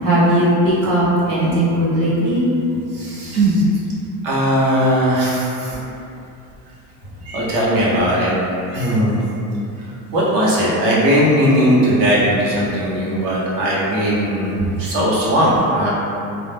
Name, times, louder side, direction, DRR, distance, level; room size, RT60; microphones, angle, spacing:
voice 1, 0.0-2.5 3.3-3.6, right 1 dB, 75° right, -8 dB, 1.0 m, -17 dB
voice 2, 2.9-3.6 4.2-5.8 7.2-8.3 8.7-9.2 10.1-15.9, equal, 50° right, -7 dB, 0.8 m, -18 dB
2.3 x 2.1 x 3.2 m, 2.7 s
cardioid pair, 175°, 41 cm